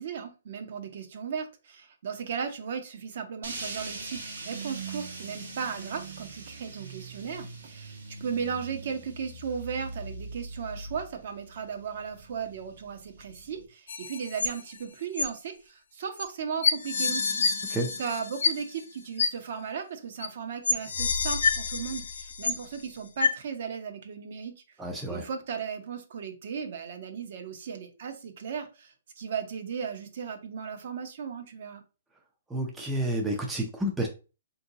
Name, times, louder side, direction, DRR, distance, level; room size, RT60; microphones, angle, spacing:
voice 1, 0.0-24.5 25.1-31.8, right 6 dB, 50° right, 6 dB, 0.6 m, -36 dB
sound 1, 3.4-13.7, right 3 dB, 80° right, 1.0 m, -42 dB
sound 2, 13.9-14.8 15.2-15.3 16.2-16.3 16.6-18.8 19.2-19.3 20.2-20.3 20.6-22.8 23.2-23.3, left 5 dB, 70° left, 0.5 m, -28 dB
voice 2, 24.8-25.3 32.5-34.1, right 1 dB, 5° right, 0 dB, 0.3 m, -30 dB
3.7 x 2.7 x 2.6 m, 0.32 s
hypercardioid pair, 165°, 0 cm